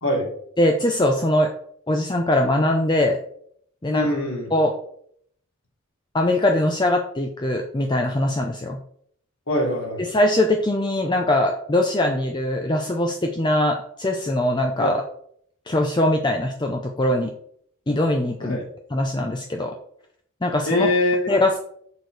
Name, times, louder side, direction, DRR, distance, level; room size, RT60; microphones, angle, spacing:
voice 1, 0.6-1.5 1.9-3.2 3.8-4.1 4.5-4.7 6.1-8.8 10.1-15.0 15.7-17.3 17.9-18.6 18.9-19.8 20.4-20.9 21.3-21.6, left 1 dB, 20° left, 3 dB, 0.6 m, -21 dB
voice 2, 3.9-4.5 9.5-10.0 14.8-14.9 18.4-18.6 20.7-21.3, left 1 dB, 75° left, -2 dB, 3.1 m, -23 dB
6.8 x 6.2 x 4.7 m, 0.66 s
head